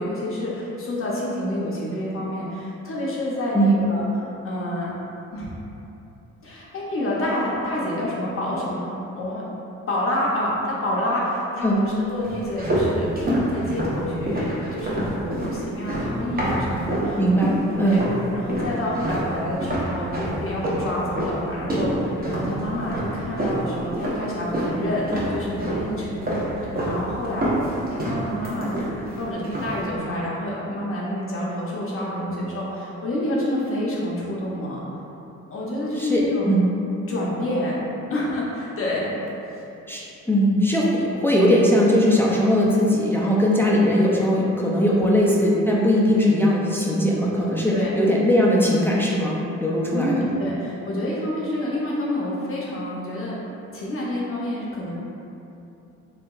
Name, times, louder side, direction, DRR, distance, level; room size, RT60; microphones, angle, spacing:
voice 1, 0.0-4.9 5.3-5.5 6.4-9.4 9.9-13.1 13.5-18.0 18.3-26.5 26.8-27.5 27.9-34.8 35.5-36.5 37.1-37.8 38.1-39.3 44.9-45.3 47.7-48.0 49.9-53.4 53.7-54.9, left 1 dB, 45° left, -5 dB, 0.6 m, -28 dB
sound 1, 12.2-17.1 17.4-18.2 18.5-24.8 25.1-25.9 26.2-27.0 27.2-29.1 29.4-29.8, right 1 dB, 30° right, 0.8 m, -26 dB
voice 2, 17.2-18.0 36.0-36.2 36.5-36.6 39.9-50.2, equal, 10° left, -4 dB, 0.3 m, -20 dB
3.3 x 2.8 x 2.3 m, 2.9 s
cardioid pair, 90°, 30 cm